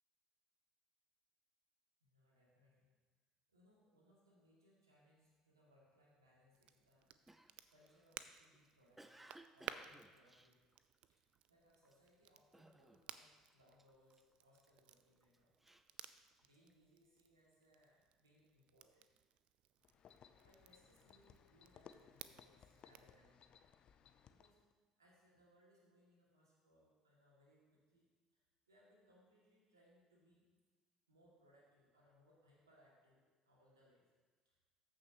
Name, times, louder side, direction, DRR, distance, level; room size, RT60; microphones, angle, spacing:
voice 1, 2.0-2.9 3.5-7.1 7.7-9.3 9.5-10.7 11.1-11.2 11.5-15.5 16.4-19.1 20.3-23.7 24.3-24.7 25.0-30.5 31.1-34.1 34.4-34.5, equal, 85° right, -5 dB, 2.3 m, -72 dB
Crackle, 6.5-23.2, right 10 dB, 55° right, 0.4 m, -58 dB
Cough, 7.3-11.3 11.8-12.1 12.5-13.2 13.5-14.7 15.2-16.7, right 1 dB, 10° right, 0.5 m, -63 dB
sound 1, 19.8-24.7, left 8 dB, 45° left, 0.5 m, -64 dB
14.0 x 6.3 x 3.0 m, 1.3 s
figure-of-eight pair, 60°, 2 cm